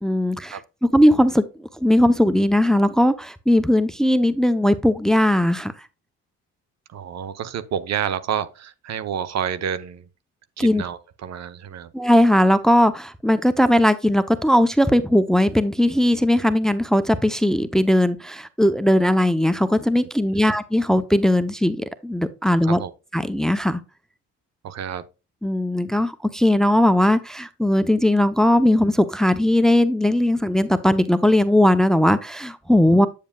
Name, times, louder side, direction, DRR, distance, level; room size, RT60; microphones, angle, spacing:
voice 1, 0.0-0.6 0.9-1.4 1.8-5.7 10.6-10.8 11.9-22.8 23.1-23.8 25.4-33.1, left 1 dB, ahead, 0.6 m, -18 dB
voice 2, 6.9-10.1 10.6-11.9 20.4-20.6 22.6-22.9 24.6-25.0, right 8 dB, 60° right, 0.8 m, -29 dB
8.5 x 7.4 x 2.3 m
cardioid pair, 90°, 30 cm